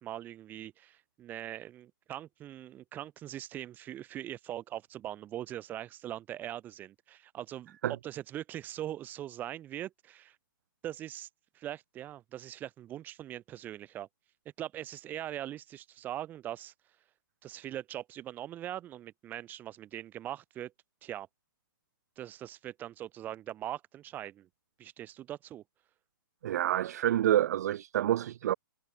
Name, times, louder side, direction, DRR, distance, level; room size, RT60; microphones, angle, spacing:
voice 1, 0.0-7.8 8.0-10.4 10.8-11.3 11.5-14.1 14.6-16.7 17.4-20.7 21.0-21.3 22.2-24.5 24.8-25.6, right 12 dB, 15° right, 1.4 m, -41 dB
voice 2, 26.4-28.5, right 12 dB, 50° right, 0.3 m, -28 dB
hypercardioid pair, 165°, 12 cm